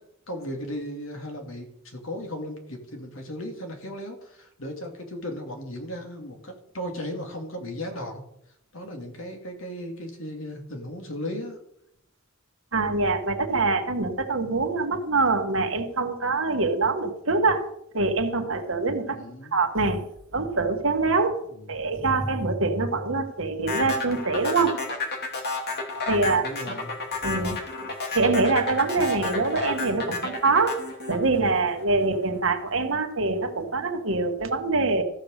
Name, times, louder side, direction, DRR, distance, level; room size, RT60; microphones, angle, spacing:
voice 1, 0.3-8.2 8.7-11.6 19.1-19.6 26.2-26.9, equal, 70° left, 3 dB, 2.6 m, -36 dB
voice 2, 12.7-17.7 17.9-19.2 19.5-20.1 20.3-24.8 26.1-26.5 27.2-27.6 28.1-30.8 31.1-35.0, right 3 dB, 65° right, 5 dB, 1.6 m, -24 dB
sound 1, 23.7-32.0, left 3 dB, 50° left, 2.7 m, -31 dB
14.5 x 6.6 x 6.6 m, 0.75 s
head